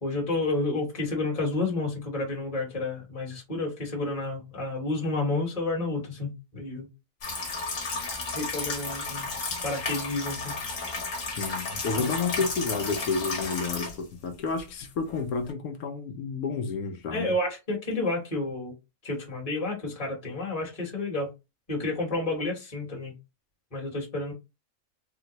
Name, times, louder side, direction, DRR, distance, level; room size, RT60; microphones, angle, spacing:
voice 1, 0.0-6.9 7.8-8.0 8.3-9.3 9.6-10.5 12.0-12.1 17.1-18.7 19.0-21.3 21.7-23.1 23.7-24.3, left 2 dB, 25° left, 1.2 m, -30 dB
sound 1, 7.2-14.0 14.6-14.7 15.1-15.2 15.5-15.6, left 3 dB, 60° left, 1.3 m, -33 dB
voice 2, 11.3-17.3, left 4 dB, 85° left, 1.1 m, -30 dB
3.6 x 2.1 x 2.9 m
omnidirectional pair, 1.5 m